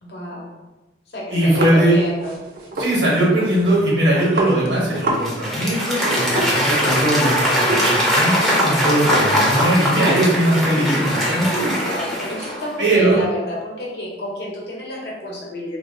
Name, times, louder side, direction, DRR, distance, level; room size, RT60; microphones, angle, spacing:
voice 1, 0.0-0.6 1.1-2.4 11.8-15.8, left 1 dB, 65° left, -3 dB, 0.8 m, -30 dB
voice 2, 1.3-1.9 2.8-11.7 12.8-13.2, right 1 dB, 80° right, -4 dB, 1.1 m, -19 dB
sound 1, 1.6-5.3 5.5-5.6 5.9-7.3 7.7-7.9 8.1-10.8 11.1-12.6, right 1 dB, 50° right, 0.5 m, -27 dB
Applause / Crowd, 5.0-12.7, equal, ahead, 0.5 m, -21 dB
3.0 x 2.4 x 2.6 m, 1.1 s
head